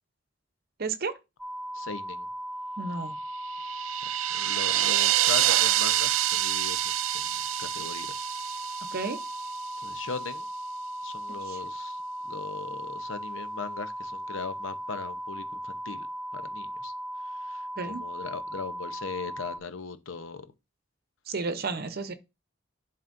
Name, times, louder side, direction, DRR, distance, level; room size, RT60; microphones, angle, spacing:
voice 1, 0.8-1.1 2.8-3.1 8.9-9.2 11.4-11.6 17.8-18.0 21.3-22.1, right 4 dB, 50° right, 0.7 m, -32 dB
sound 1, 1.4-19.6, equal, 5° right, 0.5 m, -37 dB
voice 2, 1.7-2.3 4.3-7.2 7.6-8.2 9.8-10.5 11.0-12.0 12.3-16.1 16.3-16.9 17.5-20.4, left 4 dB, 85° left, 0.8 m, -39 dB
sound 2, 3.4-9.6, right 14 dB, 80° right, 0.4 m, -27 dB
11.0 x 4.2 x 2.6 m
head